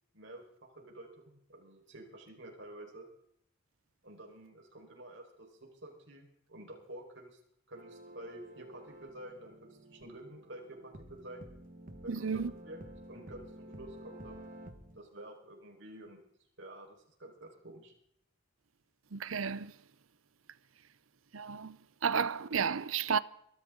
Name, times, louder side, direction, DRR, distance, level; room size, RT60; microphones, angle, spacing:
voice 1, 0.1-3.1 4.0-7.4 7.7-11.4 12.0-12.8 13.1-14.5 14.9-16.2 16.6-17.9, right 1 dB, 65° right, 5.1 m, -50 dB
sound 1, 7.7-15.0, right 1 dB, 45° right, 1.7 m, -51 dB
voice 2, 12.1-12.5 19.1-19.7 21.3-21.8 22.0-23.2, right 6 dB, 90° right, 0.7 m, -32 dB
23.0 x 13.5 x 3.9 m
head